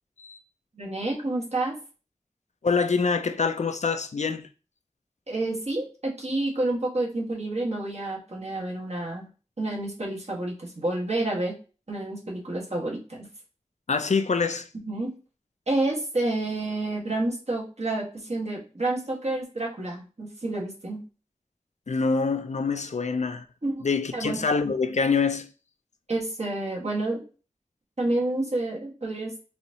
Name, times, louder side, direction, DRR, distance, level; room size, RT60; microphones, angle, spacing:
voice 1, 0.7-1.7 5.3-9.3 9.6-11.5 11.9-13.3 14.8-15.1 15.7-21.0 23.6-23.8 24.1-24.4 26.1-27.2 28.0-29.3, right 2 dB, 60° right, 1.5 m, -29 dB
voice 2, 2.6-4.5 13.9-14.7 21.9-23.4 23.8-25.5, left 4 dB, 70° left, 0.4 m, -25 dB
4.1 x 2.8 x 2.8 m
wide cardioid pair, 45°, 12 cm